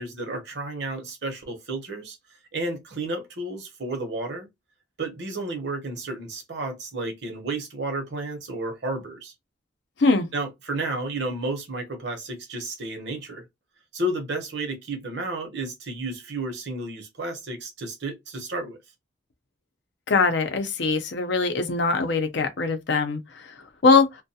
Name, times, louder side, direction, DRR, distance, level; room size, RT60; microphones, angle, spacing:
voice 1, 0.0-2.2 2.5-4.5 5.0-9.3 10.3-13.4 13.9-18.8, right 2 dB, 65° right, 0.8 m, -32 dB
voice 2, 20.1-23.2 23.8-24.1, left 4 dB, 65° left, 0.6 m, -21 dB
2.3 x 2.1 x 2.7 m
head